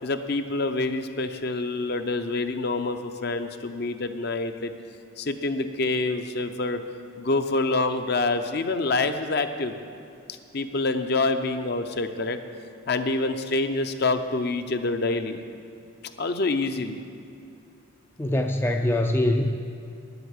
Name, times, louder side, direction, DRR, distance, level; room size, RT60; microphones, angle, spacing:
voice 1, 0.0-4.7 5.2-6.8 7.2-9.8 10.5-12.4 12.9-15.4 16.2-17.0, left 3 dB, 50° left, 8 dB, 0.6 m, -26 dB
voice 2, 18.2-19.6, left 1 dB, 10° left, 4 dB, 0.3 m, -23 dB
10.0 x 8.0 x 8.1 m, 2.6 s
head